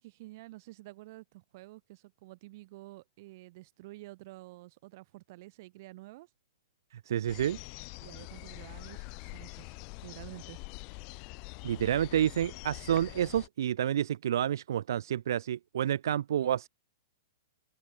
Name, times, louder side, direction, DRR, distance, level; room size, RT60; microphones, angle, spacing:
voice 1, 0.0-6.3 8.0-9.8 10.0-10.6, right 19 dB, 50° right, 5.8 m, -50 dB
voice 2, 6.9-7.6 11.6-16.7, right 10 dB, 70° right, 0.6 m, -29 dB
sound 1, 7.3-13.5, left 35 dB, 40° left, 1.5 m, -45 dB
open air
hypercardioid pair, 145°, 2 cm